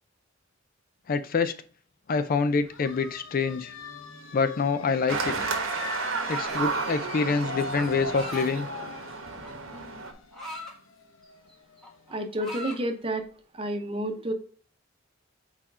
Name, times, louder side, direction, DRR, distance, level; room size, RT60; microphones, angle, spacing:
voice 1, 1.1-1.5 2.1-3.7 4.3-5.5 6.3-8.7, left 4 dB, 45° left, 0.4 m, -26 dB
sound 1, 2.6-12.1, left 4 dB, 85° left, 0.8 m, -41 dB
sound 2, 5.1-10.1, right 4 dB, 85° right, 1.1 m, -32 dB
sound 3, 6.2-6.8 7.8-8.5 9.4-10.8 11.2-11.5 11.8-12.8, left 1 dB, ahead, 1.4 m, -40 dB
voice 2, 12.1-13.2 13.5-14.3, right 1 dB, 30° right, 0.8 m, -30 dB
4.4 x 4.4 x 5.4 m
head